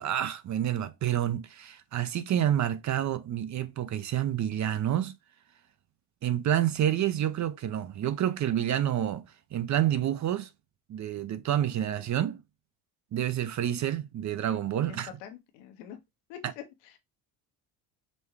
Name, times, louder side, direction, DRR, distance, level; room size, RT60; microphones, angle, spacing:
voice 1, 0.0-5.1 6.2-9.2 9.5-10.5 10.9-12.4 13.1-15.1, right 11 dB, 40° right, 0.6 m, -28 dB
voice 2, 14.9-16.0 16.3-16.6, left 10 dB, 75° left, 1.1 m, -44 dB
5.3 x 2.2 x 3.2 m
supercardioid pair, 75°, 45 cm